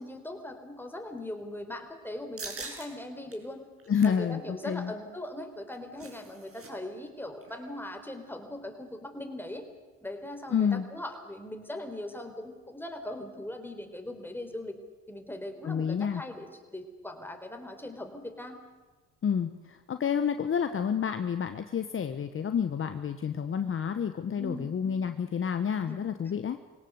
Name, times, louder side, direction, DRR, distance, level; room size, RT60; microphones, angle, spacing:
voice 1, 0.0-3.7 4.0-9.7 10.0-14.8 15.1-18.6 24.4-24.7 25.9-26.2, left 1 dB, 5° left, 5 dB, 4.1 m, -40 dB
sound 1, 2.4-2.9 3.3-3.4 3.8-4.2 5.5-6.7 7.0-7.1 7.4-7.7, right 4 dB, 45° right, 5.9 m, -43 dB
voice 2, 3.9-4.9 10.5-10.8 15.6-16.2 19.2-26.6, left 7 dB, 40° left, 9 dB, 1.2 m, -29 dB
23.0 x 17.5 x 8.1 m, 1.3 s
supercardioid pair, 65°, 32 cm